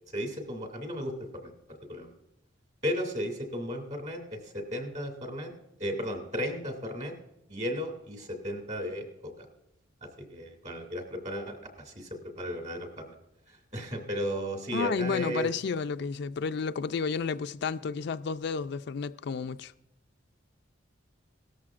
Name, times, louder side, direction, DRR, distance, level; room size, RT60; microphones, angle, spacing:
voice 1, 0.1-1.1 1.4-2.1 2.8-5.5 5.8-7.1 7.5-9.5 10.0-13.1 13.5-15.5, equal, 40° right, 2.5 m, -35 dB
voice 2, 14.7-19.7, left 5 dB, 55° left, 0.4 m, -31 dB
17.5 x 13.5 x 2.5 m
head